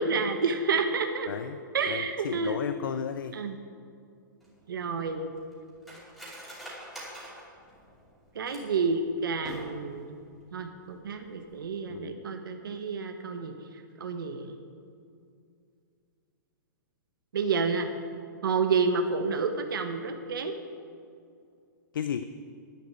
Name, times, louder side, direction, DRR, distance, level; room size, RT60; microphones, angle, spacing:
voice 1, 0.0-1.3 1.7-2.6 3.3-3.6 4.7-5.3 8.3-10.2 10.5-13.6 14.0-14.5 17.3-17.9 18.4-20.5, right 4 dB, 85° right, 5 dB, 1.3 m, -29 dB
voice 2, 1.3-1.6 1.9-3.4 11.9-12.2 21.9-22.2, left 8 dB, 75° left, 10 dB, 0.6 m, -33 dB
Cutlery silverware, 4.4-8.9 9.3-10.0 10.3-10.4 10.8-11.1 11.5-11.6, right 1 dB, ahead, 2.7 m, -45 dB
10.5 x 8.3 x 9.4 m, 2.4 s
hypercardioid pair, 170°, 11 cm